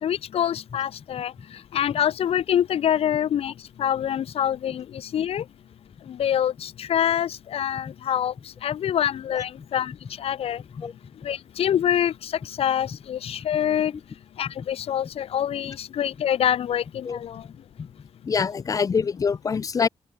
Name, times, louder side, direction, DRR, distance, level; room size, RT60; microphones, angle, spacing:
voice 1, 0.0-1.3 1.7-3.5 3.8-5.4 6.1-8.3 8.6-9.9 10.2-10.6 11.2-13.9 14.4-17.4, left 10 dB, 80° left, 1.1 m, -25 dB
voice 2, 18.2-19.9, left 5 dB, 35° left, 0.3 m, -25 dB
open air
cardioid pair, 85°, 10 cm